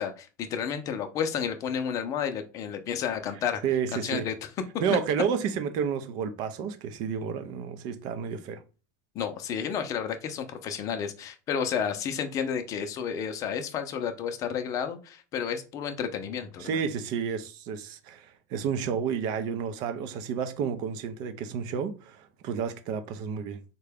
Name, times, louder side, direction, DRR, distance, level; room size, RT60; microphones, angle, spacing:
voice 1, 0.0-3.6 3.9-4.3 9.1-16.7, left 7 dB, 35° left, 0.5 m, -31 dB
voice 2, 3.6-4.3 4.8-8.6 16.6-23.6, right 7 dB, 50° right, 0.5 m, -31 dB
3.7 x 2.2 x 3.4 m
supercardioid pair, 145°, 10 cm